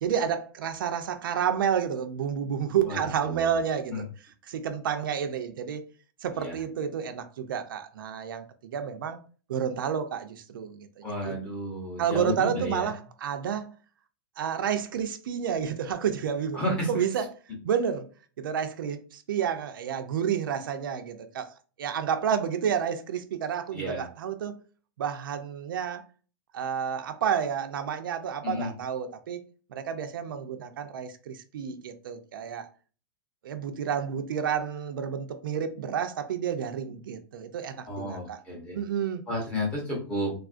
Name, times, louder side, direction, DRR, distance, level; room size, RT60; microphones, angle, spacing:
voice 1, 0.0-4.1 4.4-5.8 6.2-9.2 9.5-11.4 12.0-13.7 14.4-16.6 16.9-17.3 17.6-18.1 18.4-21.5 21.8-24.6 25.0-26.0 26.5-29.4 29.7-32.7 33.4-38.4 38.7-39.2, right 8 dB, 65° right, 0.4 m, -30 dB
voice 2, 2.8-3.5 3.9-4.0 6.3-6.5 11.0-12.9 16.5-16.9 23.7-24.0 28.4-28.7 37.9-38.8 39.3-40.3, left 1 dB, 10° left, 0.7 m, -32 dB
3.5 x 2.3 x 2.4 m
supercardioid pair, 175°, 12 cm